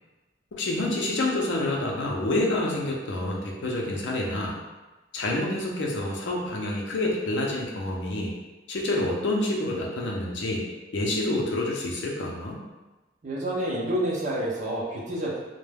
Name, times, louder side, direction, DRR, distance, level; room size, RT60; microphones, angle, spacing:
voice 1, 0.5-4.6 5.1-8.3 8.7-10.6 10.9-12.6, left 1 dB, 65° left, -1 dB, 0.5 m, -28 dB
voice 2, 13.2-15.4, right 1 dB, 35° right, -5 dB, 0.5 m, -28 dB
2.2 x 2.1 x 3.2 m, 1.1 s
head